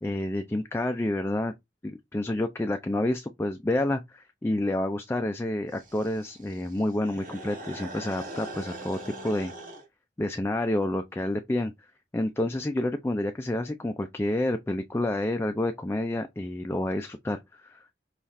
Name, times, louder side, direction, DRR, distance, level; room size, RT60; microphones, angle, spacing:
voice 1, 0.0-1.5 1.8-9.5 10.2-11.7 12.1-17.9, left 1 dB, 15° left, 0.3 m, -29 dB
sound 1, 5.7-9.8, right 1 dB, 50° right, 1.4 m, -42 dB
5.5 x 2.4 x 3.1 m
head